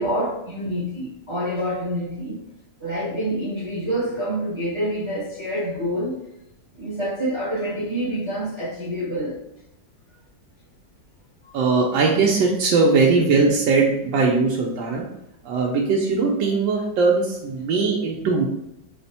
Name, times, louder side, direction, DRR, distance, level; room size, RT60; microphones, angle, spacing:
voice 1, 0.0-2.4 2.8-6.2 6.7-9.4 11.4-11.6, equal, 40° right, -7 dB, 0.4 m, -27 dB
voice 2, 11.5-15.0 15.4-18.5, right 4 dB, 90° right, -2 dB, 1.3 m, -20 dB
4.1 x 2.1 x 4.1 m, 0.86 s
omnidirectional pair, 2.0 m